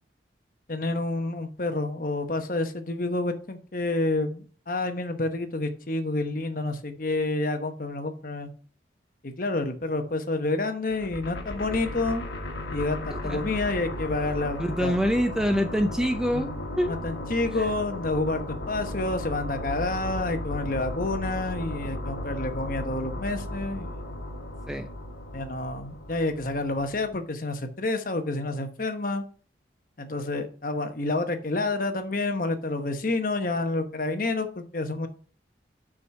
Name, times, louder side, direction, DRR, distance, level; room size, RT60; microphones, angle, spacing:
voice 1, 0.7-8.5 9.2-12.2 12.7-14.9 16.3-16.5 16.9-23.9 25.3-29.3 30.0-35.1, left 2 dB, 50° left, 7 dB, 1.0 m, -29 dB
sound 1, 10.9-27.1, left 1 dB, 75° left, 1.5 m, -35 dB
voice 2, 13.1-13.4 14.6-16.9 17.5-17.7 24.7-24.9, equal, 5° right, 7 dB, 0.5 m, -26 dB
6.2 x 4.7 x 6.3 m, 0.43 s
head